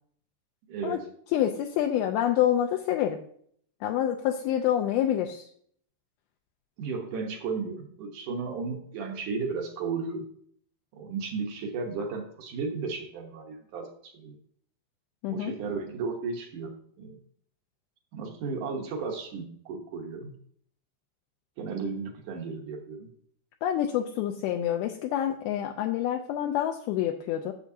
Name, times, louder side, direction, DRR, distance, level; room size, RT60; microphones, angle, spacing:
voice 1, 0.7-1.0 6.8-10.2 10.9-14.4 15.3-16.7 17.0-17.2 18.1-20.3 21.6-23.1, right 4 dB, 65° right, 2 dB, 2.0 m, -34 dB
voice 2, 1.3-3.2 3.8-5.5 15.2-15.5 23.6-27.5, left 11 dB, 80° left, 3 dB, 2.4 m, -27 dB
12.0 x 7.3 x 2.8 m, 0.62 s
omnidirectional pair, 4.7 m